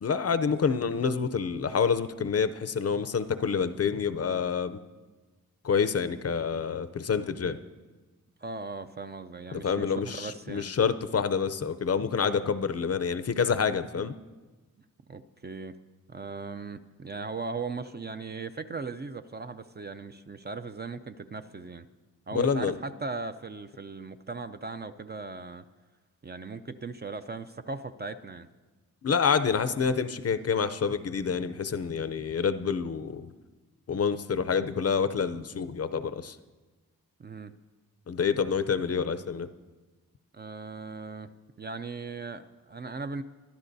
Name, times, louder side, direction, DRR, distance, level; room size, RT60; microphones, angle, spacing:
voice 1, 0.0-4.8 5.6-7.6 9.5-14.1 22.3-22.7 29.0-33.3 33.9-36.4 38.1-39.5, left 6 dB, 45° left, 13 dB, 0.5 m, -27 dB
voice 2, 8.4-10.7 15.1-15.8 16.1-21.9 22.3-25.6 26.2-28.5 37.2-37.5 40.3-41.3 41.6-43.2, right 4 dB, 30° right, 10 dB, 0.4 m, -38 dB
22.5 x 12.0 x 2.7 m, 1.2 s
wide cardioid pair, 95°, 35 cm